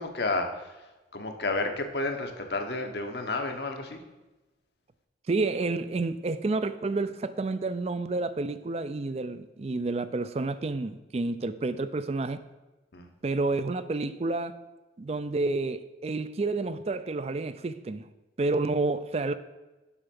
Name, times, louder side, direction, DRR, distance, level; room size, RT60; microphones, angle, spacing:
voice 1, 0.0-4.0 12.9-13.1, left 2 dB, 65° left, 1.0 m, -31 dB
voice 2, 5.3-12.4 13.2-14.6 15.0-18.1 18.4-19.3, right 3 dB, 35° right, 0.4 m, -29 dB
7.2 x 5.7 x 5.3 m
head